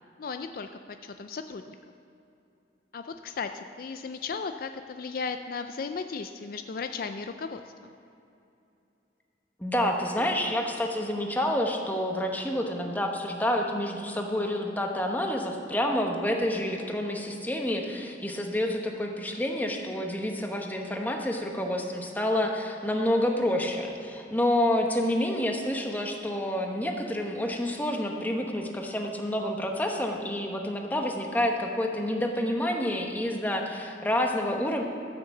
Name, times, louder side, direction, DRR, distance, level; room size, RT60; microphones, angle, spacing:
voice 1, 0.2-0.7 1.0-1.8 2.9-7.9, left 5 dB, 55° left, 8 dB, 0.4 m, -36 dB
voice 2, 9.6-34.8, left 1 dB, 10° left, 2 dB, 1.0 m, -28 dB
13.0 x 6.5 x 7.1 m, 2.7 s
head